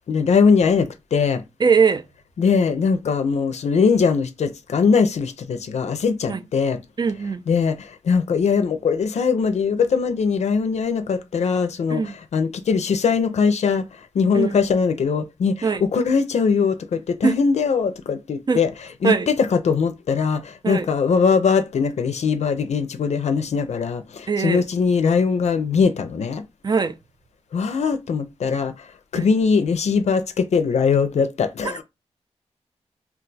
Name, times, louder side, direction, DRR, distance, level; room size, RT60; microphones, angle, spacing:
voice 1, 0.1-1.4 2.4-6.8 7.5-13.9 14.1-18.7 19.0-26.4 27.5-28.7 29.1-31.8, left 5 dB, 70° left, 0.5 m, -21 dB
voice 2, 1.6-2.0 6.3-6.4 7.0-7.4 11.9-12.1 14.3-14.6 15.6-15.8 17.2-17.3 18.5-18.6 19.0-19.3 20.6-20.9 24.3-24.6 26.6-26.9 29.2-29.3 31.6-31.8, right 5 dB, 35° right, 0.4 m, -21 dB
2.4 x 2.3 x 3.9 m
cardioid pair, 55°, 12 cm